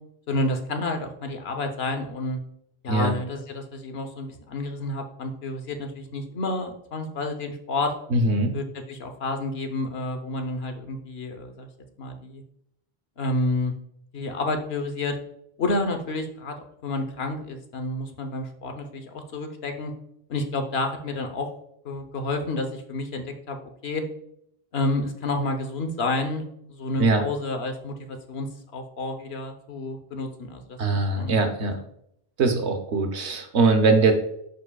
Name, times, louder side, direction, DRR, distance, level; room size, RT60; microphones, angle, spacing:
voice 1, 0.3-2.4 2.8-7.9 8.5-11.7 12.0-12.4 13.2-13.7 14.1-15.2 15.6-16.5 16.8-19.9 20.3-21.5 21.8-24.0 24.7-31.5, left 2 dB, 70° left, 6 dB, 1.1 m, -30 dB
voice 2, 8.1-8.6 27.0-27.2 30.8-31.8 32.4-34.1, right 3 dB, 90° right, 5 dB, 1.2 m, -21 dB
10.5 x 4.9 x 2.3 m, 0.75 s
omnidirectional pair, 1.1 m